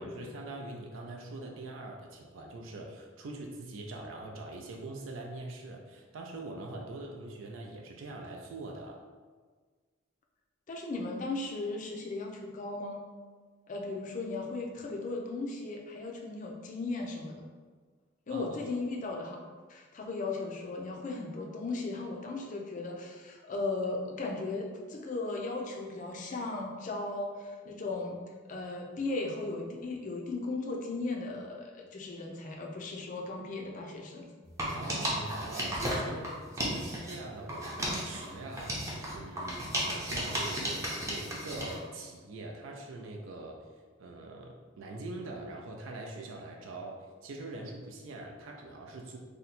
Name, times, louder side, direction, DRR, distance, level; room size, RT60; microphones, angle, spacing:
voice 1, 0.0-9.0 18.3-18.5 34.7-38.8 39.1-43.6 44.0-49.2, right 2 dB, 80° right, 0 dB, 0.4 m, -43 dB
voice 2, 10.7-13.0 13.7-17.5 18.3-19.4 19.7-28.2 28.5-34.2, left 3 dB, 40° left, 1 dB, 0.4 m, -36 dB
sound 1, 34.5-37.2 37.5-41.8, equal, 15° right, 0.6 m, -34 dB
2.7 x 2.1 x 4.0 m, 1.5 s
head